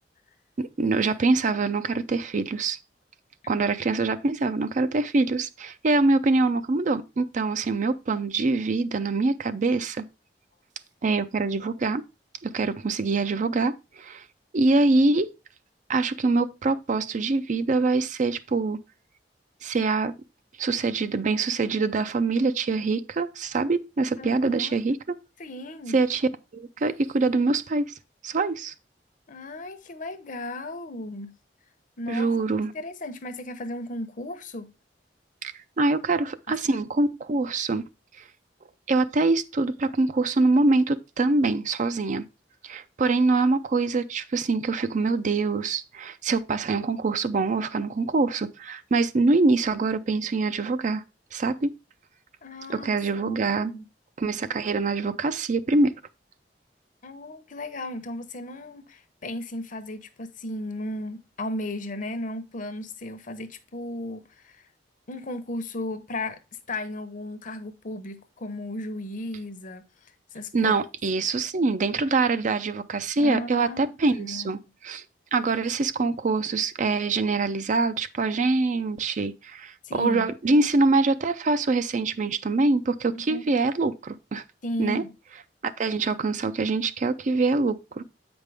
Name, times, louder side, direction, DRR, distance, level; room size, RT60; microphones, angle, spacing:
voice 1, 0.6-2.8 3.5-10.0 11.0-12.0 12.4-14.2 14.5-15.3 15.9-18.8 19.6-20.1 20.6-25.2 25.9-27.9 28.2-28.7 32.1-32.7 35.4-37.8 38.9-42.3 42.6-51.0 51.3-51.7 52.7-53.7 54.2-55.9 70.5-74.6 74.8-75.0 75.3-84.4 84.8-85.0 85.6-88.0, right 3 dB, 45° right, 0.5 m, -24 dB
voice 2, 24.2-24.8 25.4-26.0 29.3-31.4 32.0-32.3 32.7-34.7 36.5-36.8 52.4-53.4 53.7-53.8 57.0-64.6 65.1-66.4 66.7-69.9 70.3-70.8 73.2-74.5 79.8-80.3 83.3-83.5 84.6-85.1, left 1 dB, 50° left, 0.8 m, -35 dB
8.2 x 5.2 x 3.4 m
head